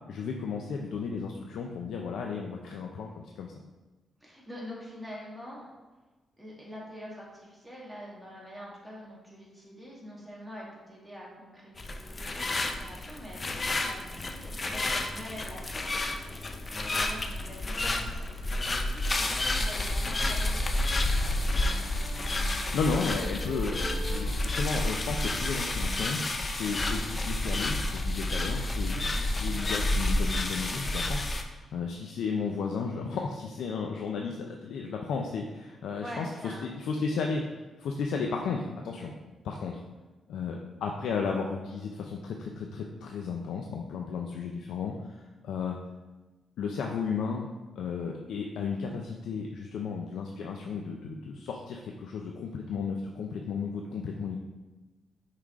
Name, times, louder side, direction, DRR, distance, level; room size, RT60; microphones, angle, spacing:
voice 1, 0.1-3.5 22.5-37.4 37.8-39.1 39.4-39.8 40.3-45.1 45.4-45.8 46.6-47.5 47.8-54.4, left 5 dB, 85° left, 1 dB, 0.5 m, -34 dB
voice 2, 4.2-5.7 6.4-16.0 16.9-19.3 19.5-21.9 36.0-36.7 37.1-37.2, equal, 5° right, -5 dB, 1.7 m, -45 dB
sound 1, 11.8-31.4, left 1 dB, 25° left, 0.5 m, -30 dB
sound 2, 21.1-26.3, right 2 dB, 55° right, 1.1 m, -45 dB
5.7 x 4.8 x 3.6 m, 1.2 s
cardioid pair, 130°, 0 cm